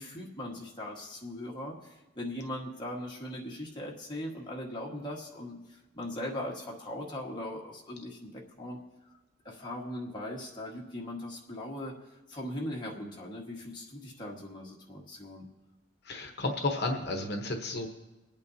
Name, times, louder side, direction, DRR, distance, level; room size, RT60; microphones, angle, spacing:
voice 1, 0.0-8.8 9.4-11.9 12.3-15.5, left 1 dB, 20° left, -2 dB, 1.5 m, -39 dB
voice 2, 16.0-17.9, left 2 dB, 55° left, 3 dB, 1.0 m, -32 dB
24.5 x 8.8 x 2.7 m, 1.1 s
head